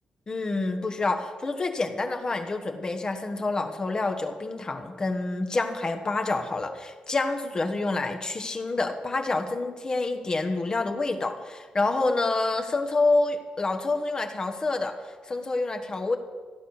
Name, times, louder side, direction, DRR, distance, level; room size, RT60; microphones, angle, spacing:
voice 1, 0.3-16.2, left 3 dB, 30° left, 5 dB, 1.2 m, -27 dB
15.0 x 9.9 x 7.1 m, 1.5 s
cardioid pair, 120°, 3 cm